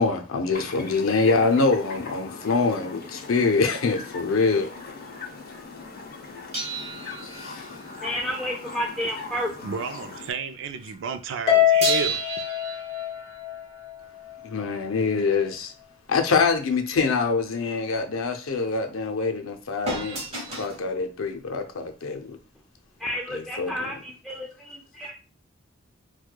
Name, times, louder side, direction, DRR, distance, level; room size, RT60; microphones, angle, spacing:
voice 1, 0.0-4.7 7.2-7.7 14.4-15.7 16.1-22.4 23.3-23.7, left 4 dB, 85° left, 0.5 m, -25 dB
sound 1, 0.5-10.3, left 3 dB, 50° left, 0.6 m, -40 dB
sound 2, 6.5-9.7 9.9-10.2 11.8-14.5 19.8-20.9 21.8-21.9, right 3 dB, 30° right, 0.9 m, -33 dB
voice 2, 8.0-9.6 23.0-25.1, equal, ahead, 0.3 m, -31 dB
voice 3, 9.6-12.2, right 5 dB, 65° right, 0.4 m, -32 dB
Harp, 11.5-13.9, left 10 dB, 30° left, 1.2 m, -23 dB
4.6 x 2.2 x 2.2 m
head